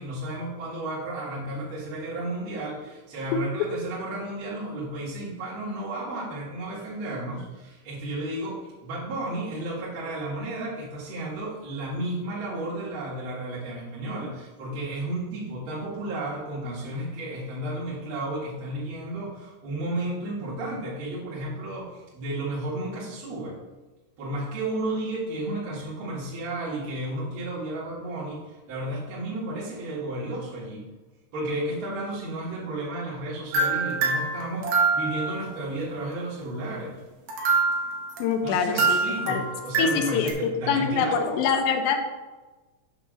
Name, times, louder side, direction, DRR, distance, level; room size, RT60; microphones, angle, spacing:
voice 1, 0.0-23.6 24.2-28.4 28.7-30.8 31.3-36.9 38.4-41.4, right 1 dB, 40° right, -8 dB, 2.2 m, -33 dB
sound 1, 33.5-35.4 37.3-40.3, right 4 dB, 75° right, 2.5 m, -25 dB
voice 2, 38.2-39.0 39.3-39.4 39.8-40.3 40.7-42.0, left 6 dB, 80° left, 4 dB, 2.2 m, -24 dB
7.0 x 3.5 x 6.2 m, 1.2 s
omnidirectional pair, 4.8 m